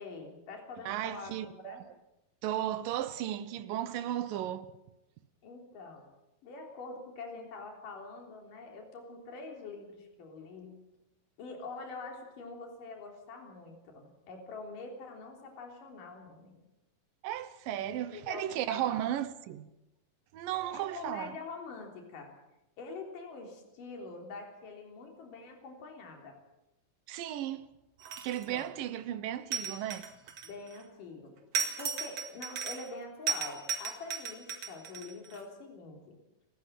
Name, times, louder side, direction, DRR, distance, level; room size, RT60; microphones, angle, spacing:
voice 1, 0.0-1.8 5.4-6.0 6.4-10.7 11.4-16.6 17.8-19.0 20.7-22.3 22.8-26.4 28.5-28.7 30.4-31.3 31.8-36.2, left 3 dB, 65° left, 5.1 m, -45 dB
voice 2, 0.9-1.8 2.4-4.7 17.2-19.7 20.3-21.4 27.1-27.7 28.2-30.1, right 12 dB, 75° right, 2.6 m, -35 dB
sound 1, 28.0-28.6 29.5-30.8 31.5-32.9 33.3-35.4, right 6 dB, 50° right, 3.0 m, -35 dB
29.0 x 15.0 x 7.6 m
omnidirectional pair, 4.2 m